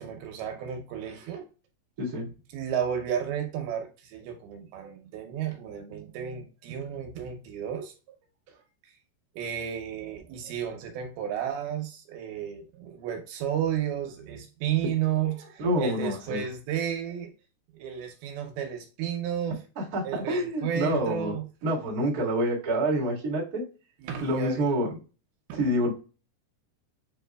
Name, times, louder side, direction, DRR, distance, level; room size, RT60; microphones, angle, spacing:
voice 1, 0.0-1.5 2.5-7.9 8.5-8.9 9.3-17.3 17.7-19.6 20.0-21.5 24.0-24.6 25.5-25.6, right 9 dB, 75° right, 4 dB, 2.5 m, -32 dB
voice 2, 15.6-16.4 19.8-21.4 21.6-23.6 24.2-24.9 25.6-25.9, right 1 dB, 60° right, -5 dB, 0.9 m, -27 dB
7.3 x 3.1 x 2.2 m, 0.33 s
omnidirectional pair, 4.8 m